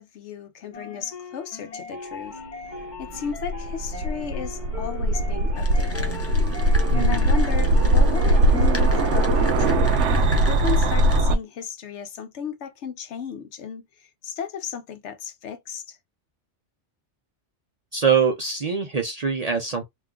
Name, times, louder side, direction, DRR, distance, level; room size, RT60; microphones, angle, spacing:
voice 1, 0.0-2.4 3.0-6.2 7.0-16.0, left 7 dB, 75° left, 1.0 m, -35 dB
sound 1, 0.7-9.5, left 4 dB, 45° left, 0.9 m, -39 dB
sound 2, 3.0-11.3, right 1 dB, 75° right, 0.9 m, -20 dB
sound 3, 5.6-11.2, left 2 dB, 25° left, 0.3 m, -39 dB
voice 2, 6.9-7.3 17.9-19.8, right 6 dB, 45° right, 0.5 m, -23 dB
2.6 x 2.3 x 3.5 m
omnidirectional pair, 1.2 m